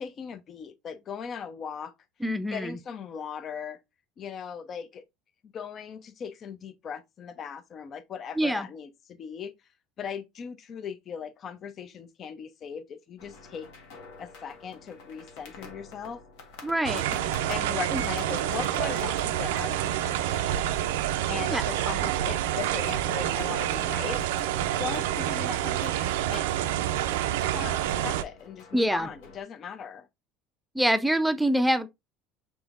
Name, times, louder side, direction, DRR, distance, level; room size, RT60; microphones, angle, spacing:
voice 1, 0.0-1.9 2.5-3.8 4.2-5.0 5.5-9.5 10.0-13.7 14.2-16.2 17.5-20.8 21.3-24.2 24.8-26.5 27.5-30.1, left 7 dB, 45° left, 0.6 m, -38 dB
voice 2, 2.2-2.7 8.4-8.7 16.6-17.0 17.9-18.0 21.5-21.6 28.7-29.1 30.7-31.9, right 1 dB, ahead, 0.5 m, -25 dB
sound 1, 13.2-29.4, left 3 dB, 75° left, 1.2 m, -47 dB
sound 2, 16.8-28.2, right 12 dB, 85° right, 0.4 m, -28 dB
5.5 x 3.5 x 2.5 m
supercardioid pair, 95°, 0 cm